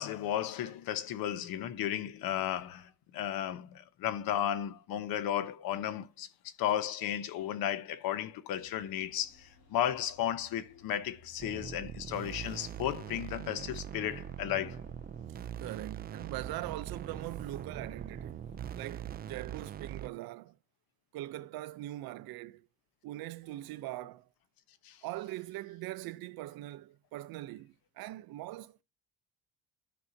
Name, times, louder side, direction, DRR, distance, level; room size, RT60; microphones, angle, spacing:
voice 1, 0.0-14.8 24.8-25.0, left 11 dB, 75° left, 0.9 m, -34 dB
sound 1, 8.6-18.6, left 3 dB, 60° left, 3.8 m, -62 dB
sound 2, 11.4-20.1, right 9 dB, 30° right, 0.4 m, -42 dB
voice 2, 15.6-18.5 18.7-20.6 21.1-22.7 23.0-24.3 25.0-28.8, right 16 dB, 80° right, 0.6 m, -42 dB
14.0 x 5.5 x 2.7 m
cardioid pair, 160°, 35 cm